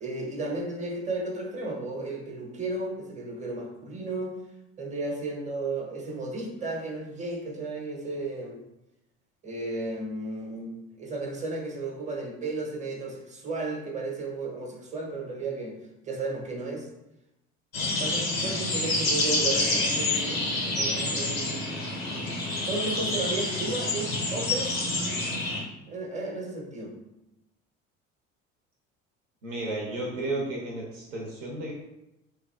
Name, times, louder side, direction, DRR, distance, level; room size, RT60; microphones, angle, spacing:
voice 1, 0.0-4.4 4.8-8.6 9.4-15.8 16.0-16.9 18.0-21.7 22.7-24.8 25.9-26.9, right 2 dB, 20° right, 0 dB, 0.7 m, -34 dB
sound 1, 17.7-25.6, left 2 dB, 90° left, 0.6 m, -28 dB
voice 2, 24.8-25.2 29.4-31.7, right 2 dB, 75° right, -2 dB, 0.7 m, -33 dB
3.3 x 2.3 x 2.3 m, 0.91 s
figure-of-eight pair, 55°, 39 cm